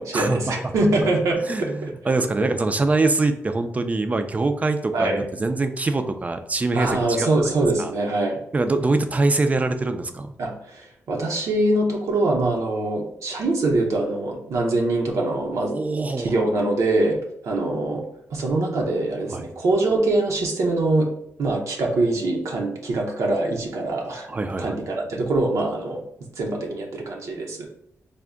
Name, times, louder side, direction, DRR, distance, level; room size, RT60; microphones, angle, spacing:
voice 1, 0.0-1.9 4.9-5.2 6.7-8.4 10.4-15.7 16.2-17.2 17.4-18.0 18.3-21.1 21.4-24.3 24.6-26.0 26.4-27.7, right 2 dB, 75° right, 0 dB, 0.7 m, -23 dB
voice 2, 1.4-7.5 7.8-7.9 8.5-10.3 15.6-16.4 19.3-19.4 24.3-24.9, right 3 dB, 25° right, 8 dB, 0.4 m, -24 dB
3.4 x 2.1 x 3.6 m, 0.73 s
cardioid pair, 85°, 5 cm